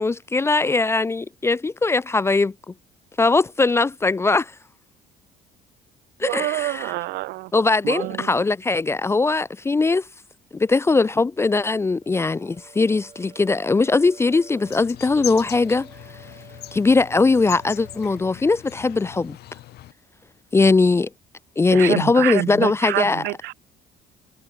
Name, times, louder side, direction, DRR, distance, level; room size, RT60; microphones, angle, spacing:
voice 1, 0.0-2.5 3.2-4.5 6.2-6.9 7.5-10.0 10.5-15.9 16.7-19.4 20.5-21.1 21.6-23.2, left 3 dB, 15° left, 0.3 m, -20 dB
voice 2, 6.2-7.5 7.8-8.3 21.7-23.5, right 19 dB, 80° right, 0.8 m, -27 dB
sound 1, 12.0-18.2, right 5 dB, 30° right, 5.8 m, -49 dB
sound 2, 14.7-19.9, left 15 dB, 75° left, 3.1 m, -39 dB
cardioid pair, 110°, 17 cm